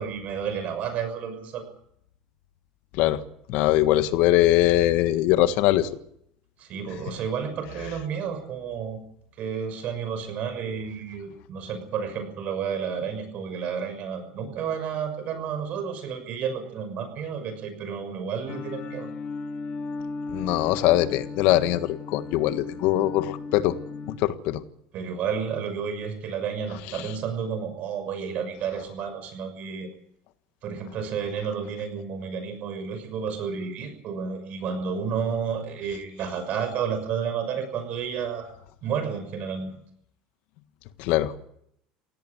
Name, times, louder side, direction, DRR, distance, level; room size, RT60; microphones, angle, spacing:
voice 1, 0.0-1.6 6.6-9.0 9.4-19.1 24.9-29.9 30.6-38.5 38.8-39.8, right 7 dB, 50° right, 9 dB, 6.3 m, -31 dB
voice 2, 3.5-5.9 20.3-23.7 24.1-24.6 26.9-27.0 41.0-41.3, left 14 dB, 70° left, 11 dB, 1.6 m, -22 dB
sound 1, 18.5-24.2, left 4 dB, 45° left, 2.2 m, -36 dB
17.5 x 17.5 x 9.7 m, 0.73 s
supercardioid pair, 115°, 3 cm